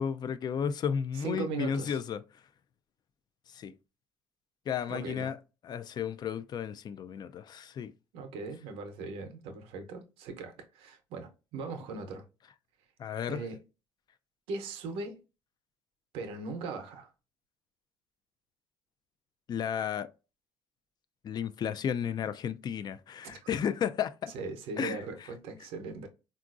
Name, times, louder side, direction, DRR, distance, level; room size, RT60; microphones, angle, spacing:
voice 1, 0.0-2.2 3.5-3.7 4.7-5.4 5.6-7.9 13.0-13.4 19.5-20.1 21.2-24.3 24.8-25.0, left 8 dB, 45° left, 0.3 m, -33 dB
voice 2, 1.1-2.0 4.9-5.3 8.1-12.2 13.3-13.6 14.5-15.2 16.1-17.1 23.2-23.4 24.3-26.1, right 4 dB, 85° right, 0.7 m, -39 dB
3.8 x 2.4 x 2.4 m
cardioid pair, 90°, 10 cm